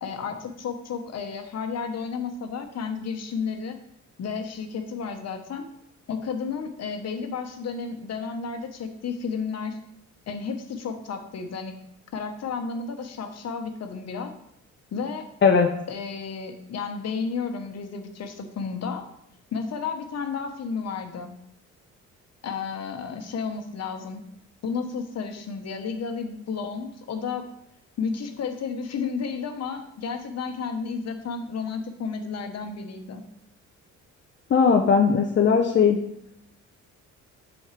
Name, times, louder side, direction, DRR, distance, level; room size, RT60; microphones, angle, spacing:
voice 1, 0.0-3.8 4.2-5.7 6.1-9.8 10.3-11.8 12.1-14.3 14.9-15.3 15.9-19.1 19.5-21.4 22.4-24.2 24.6-27.5 28.0-33.2, left 5 dB, 60° left, 5 dB, 1.2 m, -32 dB
voice 2, 34.5-36.0, left 6 dB, 40° left, 3 dB, 0.7 m, -18 dB
7.8 x 6.4 x 3.3 m, 0.79 s
cardioid pair, 90°, 30 cm